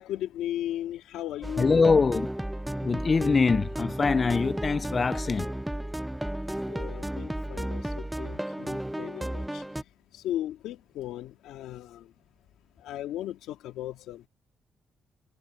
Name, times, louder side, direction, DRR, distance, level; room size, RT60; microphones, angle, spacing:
voice 1, 0.0-2.0 6.7-9.6 10.1-12.1 12.8-14.3, left 12 dB, 85° left, 2.1 m, -36 dB
sound 1, 1.4-9.8, right 1 dB, 5° right, 0.7 m, -33 dB
voice 2, 1.6-2.3 2.8-5.5, left 4 dB, 35° left, 0.4 m, -23 dB
cardioid pair, 90°, 0 cm